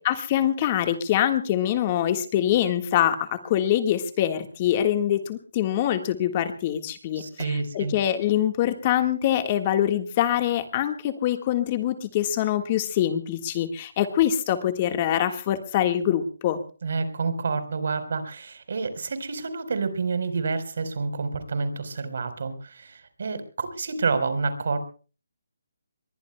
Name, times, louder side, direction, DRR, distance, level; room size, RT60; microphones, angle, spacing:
voice 1, 0.0-16.6, left 11 dB, 25° left, 8 dB, 1.6 m, -24 dB
voice 2, 7.2-7.9 16.8-24.8, right 4 dB, 55° right, 11 dB, 4.2 m, -28 dB
26.5 x 22.5 x 2.2 m, 0.37 s
hypercardioid pair, 170°, 0 cm